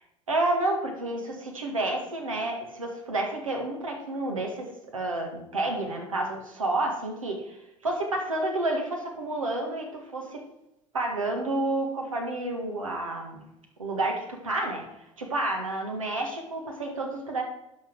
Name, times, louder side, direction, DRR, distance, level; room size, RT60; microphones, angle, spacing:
voice 1, 0.3-10.4 10.9-13.5 13.8-14.8 15.2-17.4, right 2 dB, 85° right, 2 dB, 1.8 m, -30 dB
11.5 x 5.6 x 4.6 m, 0.88 s
figure-of-eight pair, 70°, 17 cm